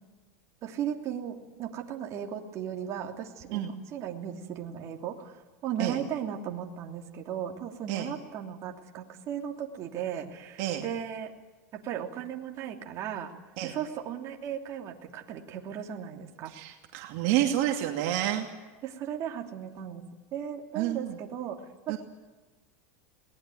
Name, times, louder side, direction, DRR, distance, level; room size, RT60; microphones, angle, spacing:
voice 1, 0.6-11.3 11.7-13.3 13.6-16.5 18.2-18.4 18.8-20.0 20.3-22.0, right 9 dB, 40° right, 2 dB, 3.0 m, -36 dB
voice 2, 16.5-18.5 20.7-21.2 21.9-22.0, right 12 dB, 60° right, 2 dB, 2.5 m, -29 dB
22.0 x 19.5 x 9.3 m, 1.3 s
supercardioid pair, 125°, 8 cm